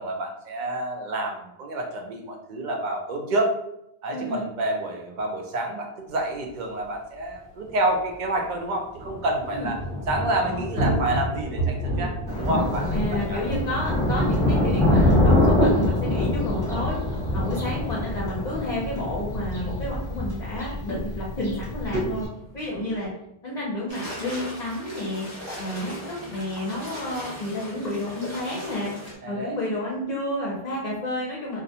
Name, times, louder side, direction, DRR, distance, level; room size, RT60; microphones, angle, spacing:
voice 1, 0.0-3.5 4.0-9.8 10.1-13.4 29.2-29.6, right 1 dB, 60° right, 2 dB, 0.6 m, -28 dB
voice 2, 4.1-4.4 9.5-9.7 10.4-10.8 12.9-17.0 17.3-22.3 22.5-23.1 23.4-25.3 25.6-28.9 29.3-31.6, left 1 dB, 50° left, -5 dB, 0.6 m, -30 dB
Thunder / Rain, 6.5-6.6 6.8-6.9 7.2-23.1, right 1 dB, 75° right, 1.2 m, -34 dB
Thunder, 12.3-22.3, left 1 dB, 5° left, 1.0 m, -24 dB
sound 1, 23.9-29.1, equal, 30° right, 0.8 m, -38 dB
2.4 x 2.1 x 2.7 m, 0.81 s
omnidirectional pair, 1.0 m